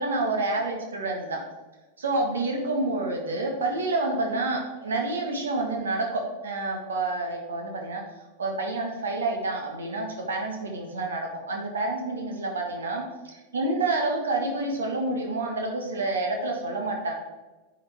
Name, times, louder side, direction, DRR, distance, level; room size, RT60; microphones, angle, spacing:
voice 1, 0.0-1.4 2.0-8.0 8.4-17.1, right 2 dB, 70° right, 1 dB, 1.7 m, -28 dB
9.3 x 5.0 x 3.6 m, 1.2 s
figure-of-eight pair, 90°, 0 cm